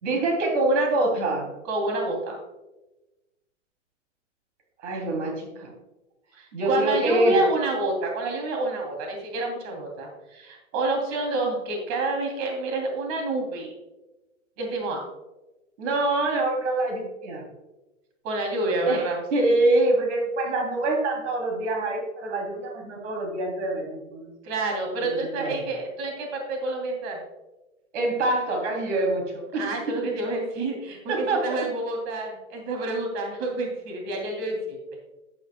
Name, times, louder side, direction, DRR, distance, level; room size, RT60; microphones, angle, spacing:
voice 1, 0.0-1.5 4.8-5.7 6.5-7.4 15.8-17.4 18.8-19.1 19.3-24.3 25.4-25.5 27.9-30.1 31.1-31.6, right 2 dB, 70° right, 1 dB, 3.0 m, -25 dB
voice 2, 1.6-2.4 6.3-13.7 14.6-15.0 18.2-19.2 24.4-27.2 29.6-34.8, right 2 dB, 45° right, 1 dB, 2.9 m, -28 dB
11.0 x 10.5 x 2.2 m, 1.0 s
hypercardioid pair, 115°, 37 cm